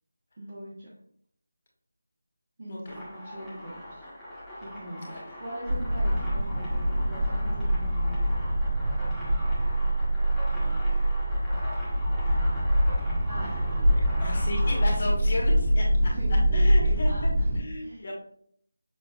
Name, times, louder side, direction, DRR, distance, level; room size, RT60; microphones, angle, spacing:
voice 1, 0.4-0.9 2.6-4.0 4.6-8.2 13.3-13.5 16.0-18.1, right 1 dB, 40° right, -6 dB, 0.9 m, -41 dB
sound 1, 2.9-14.8, equal, ahead, 0.8 m, -41 dB
voice 2, 5.0-5.4 5.9-6.0 9.8-10.0 10.3-11.0 13.7-16.1 16.5-18.1, left 1 dB, 40° left, -2 dB, 1.2 m, -36 dB
sound 2, 5.7-17.6, equal, 25° right, 0.4 m, -25 dB
6.2 x 2.5 x 2.3 m, 0.64 s
figure-of-eight pair, 170°, 0 cm